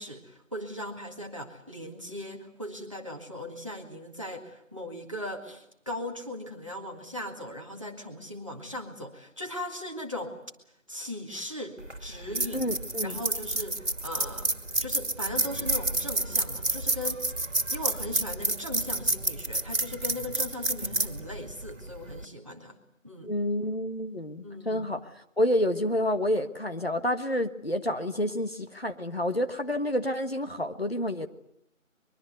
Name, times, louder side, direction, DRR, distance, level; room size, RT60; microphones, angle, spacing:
voice 1, 0.0-10.4 10.9-12.7 13.0-14.5 14.8-17.2 17.7-22.8 23.0-23.3 24.4-24.9, left 1 dB, 25° right, 2 dB, 1.9 m, -38 dB
sound 1, 11.8-22.2, right 2 dB, 65° right, 2.4 m, -30 dB
voice 2, 12.5-13.2 20.8-20.9 23.2-25.1 25.4-31.3, left 1 dB, 50° left, 7 dB, 1.5 m, -29 dB
23.5 x 22.5 x 8.1 m, 0.75 s
figure-of-eight pair, 175°, 40 cm